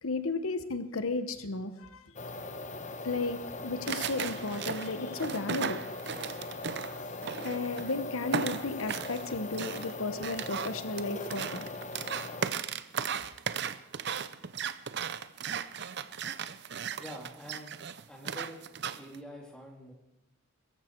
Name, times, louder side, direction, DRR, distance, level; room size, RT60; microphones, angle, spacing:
voice 1, 0.0-2.1 3.0-5.8 7.4-11.7, left 3 dB, 85° left, 10 dB, 1.1 m, -34 dB
sound 1, 2.2-12.5, left 2 dB, 35° left, 0.9 m, -41 dB
sound 2, 3.9-7.9 8.3-19.2, right 7 dB, 55° right, 0.6 m, -36 dB
voice 2, 16.9-17.7 18.1-18.6 18.9-19.9, equal, 5° left, 0 dB, 2.6 m, -46 dB
22.5 x 14.0 x 4.6 m, 0.83 s
head